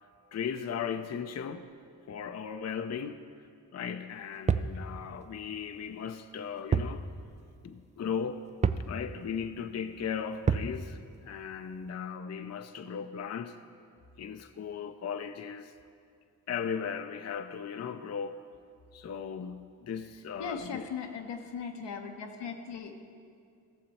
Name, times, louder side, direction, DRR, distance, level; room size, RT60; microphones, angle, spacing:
voice 1, 0.3-1.7 2.1-3.2 3.7-7.1 7.6-8.4 8.9-13.6 14.2-15.7 16.5-18.4 18.9-20.9, left 7 dB, 40° left, 0.6 m, -37 dB
sound 1, 4.5-4.8 6.7-7.0 7.3-7.4 8.6-8.9 10.5-10.8, right 6 dB, 20° right, 0.3 m, -27 dB
voice 2, 20.4-22.9, left 6 dB, 75° left, 1.1 m, -38 dB
15.0 x 6.7 x 4.2 m
supercardioid pair, 45°, 42 cm